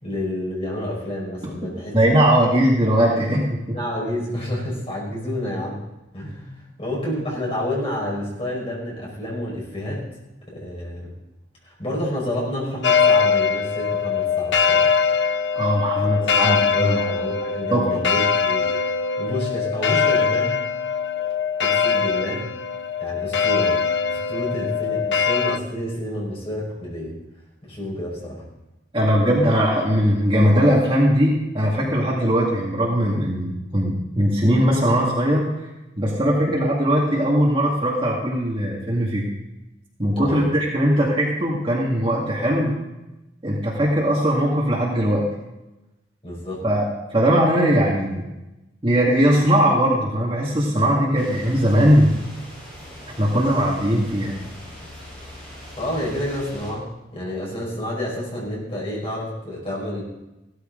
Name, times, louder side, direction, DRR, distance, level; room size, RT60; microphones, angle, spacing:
voice 1, 0.0-2.0 3.7-5.8 6.1-10.1 10.5-11.1 11.6-14.8 15.9-18.7 19.2-20.5 21.6-22.5 23.0-23.8 24.1-27.2 27.7-28.5 40.1-40.5 46.2-46.6 55.8-60.0, left 1 dB, 30° left, -4 dB, 5.4 m, -29 dB
voice 2, 1.9-3.6 15.6-17.0 17.7-17.8 28.9-35.5 36.0-39.3 40.0-42.7 43.4-45.2 46.6-46.9 47.1-48.3 48.8-52.1 53.2-54.4, equal, 30° right, -3 dB, 2.2 m, -19 dB
sound 1, 12.8-25.6, left 6 dB, 70° left, 0.6 m, -22 dB
sound 2, 51.2-56.7, equal, 10° left, 6.6 m, -41 dB
16.0 x 13.0 x 3.9 m, 0.98 s
head